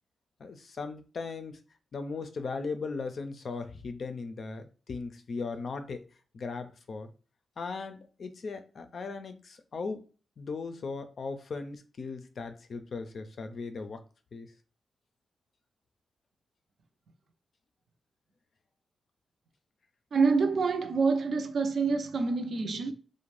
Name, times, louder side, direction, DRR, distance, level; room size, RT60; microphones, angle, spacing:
voice 1, 0.4-1.6 1.9-6.0 6.3-7.1 7.6-10.0 10.4-14.0 14.3-14.5, left 4 dB, 55° left, 0.4 m, -38 dB
voice 2, 20.1-22.9, right 4 dB, 65° right, 0.5 m, -27 dB
2.5 x 2.1 x 3.1 m
cardioid pair, 95°, 0 cm